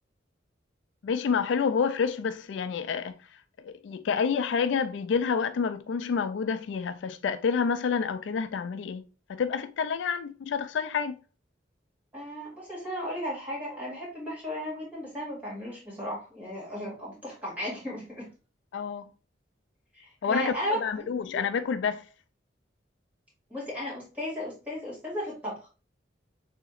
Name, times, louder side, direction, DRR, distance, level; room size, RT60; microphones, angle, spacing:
voice 1, 1.0-3.2 3.6-11.2 18.7-19.1 20.2-22.0, left 6 dB, 75° left, 0.3 m, -28 dB
voice 2, 12.1-18.3 19.9-21.4 23.5-25.7, equal, 10° right, 2.3 m, -35 dB
6.9 x 2.9 x 2.5 m
head